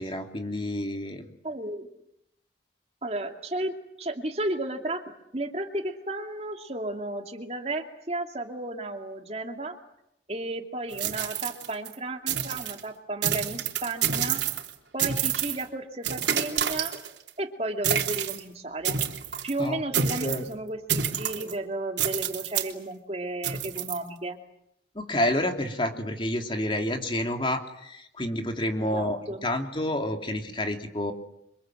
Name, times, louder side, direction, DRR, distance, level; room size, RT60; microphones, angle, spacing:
voice 1, 0.0-1.3 19.6-19.8 20.2-20.4 24.9-31.1, left 1 dB, 30° left, 4 dB, 3.1 m, -29 dB
voice 2, 1.4-1.9 3.0-5.0 5.3-9.8 10.3-14.4 14.9-16.9 17.4-19.0 19.4-24.4 28.8-29.4, right 2 dB, 35° right, 4 dB, 2.5 m, -33 dB
sound 1, 10.9-11.9 12.3-12.8 13.2-14.7 15.0-15.6 16.0-17.3 17.8-18.4 18.8-19.5 19.9-20.5 20.9-21.5 22.0-22.7 23.4-24.0, right 8 dB, 80° right, 3.3 m, -28 dB
30.0 x 25.5 x 7.8 m, 0.78 s
head